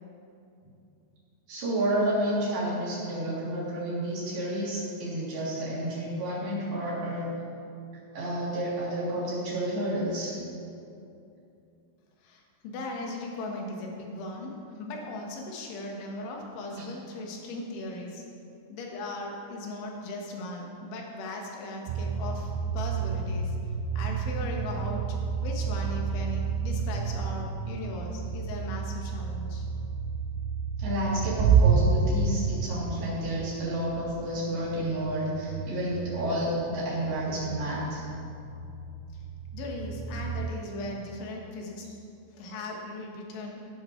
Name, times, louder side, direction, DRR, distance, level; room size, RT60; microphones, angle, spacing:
voice 1, 1.5-7.3 8.1-10.3 16.8-16.9 30.8-38.0, right 1 dB, 50° right, -8 dB, 4.7 m, -30 dB
voice 2, 12.2-14.5 14.8-18.2 18.7-23.6 24.0-29.7 39.5-41.9 42.3-43.6, left 2 dB, 75° left, 0 dB, 3.8 m, -38 dB
sound 1, 21.9-40.5, right 5 dB, 85° right, 2.6 m, -30 dB
17.0 x 11.0 x 3.2 m, 2.6 s
omnidirectional pair, 5.7 m